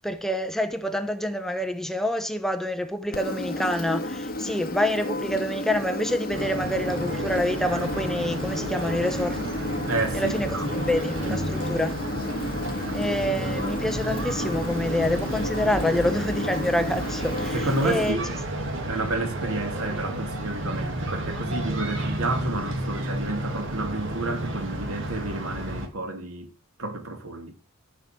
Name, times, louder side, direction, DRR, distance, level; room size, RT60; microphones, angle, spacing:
voice 1, 0.0-9.4 10.1-12.0 12.9-18.2 19.9-20.0, left 1 dB, ahead, 0.9 m, -27 dB
Engine, 3.1-18.1, left 1 dB, 45° left, 2.0 m, -32 dB
sound 1, 6.3-25.9, right 1 dB, 60° right, 2.4 m, -32 dB
voice 2, 9.9-10.9 11.3-11.4 17.5-18.3 18.8-26.5 26.8-27.6, right 2 dB, 80° right, 2.7 m, -30 dB
14.0 x 5.5 x 7.6 m
head